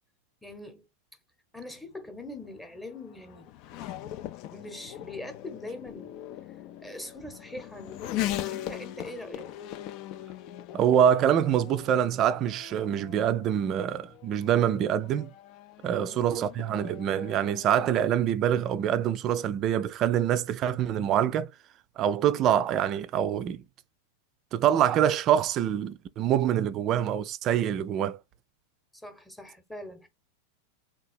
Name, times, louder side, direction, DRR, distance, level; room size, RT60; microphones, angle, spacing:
voice 1, 0.4-0.9 1.5-3.8 4.5-9.5 15.9-16.3 29.0-30.1, left 1 dB, 5° left, 0.9 m, -43 dB
Race car auto racing / Accelerating revving vroom, 1.7-18.0, left 13 dB, 40° left, 0.4 m, -40 dB
voice 2, 10.7-15.3 15.8-21.5 22.0-23.6 24.5-28.2, right 10 dB, 35° right, 0.4 m, -25 dB
3.7 x 2.5 x 4.3 m
figure-of-eight pair, 90°, 0 cm